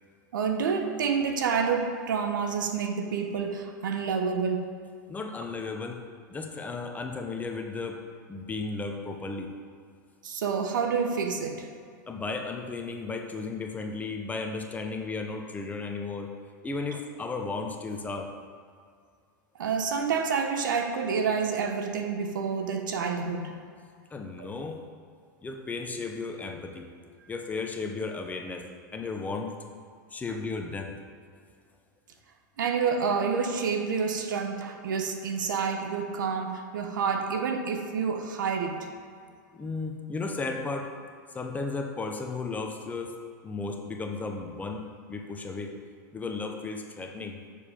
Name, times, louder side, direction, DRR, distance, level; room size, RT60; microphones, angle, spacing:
voice 1, 0.3-4.7 10.2-11.7 19.6-23.6 24.4-24.5 32.6-38.9, right 5 dB, 80° right, 5 dB, 1.0 m, -28 dB
voice 2, 5.1-6.0 6.3-8.0 8.3-9.5 12.1-16.3 16.6-18.3 24.1-24.8 25.4-26.9 27.3-29.5 30.1-30.9 39.5-40.9 41.3-43.1 43.4-45.7 46.1-47.4, left 3 dB, 15° left, 3 dB, 0.9 m, -34 dB
7.1 x 6.8 x 5.1 m, 2.2 s
hypercardioid pair, 115°, 10 cm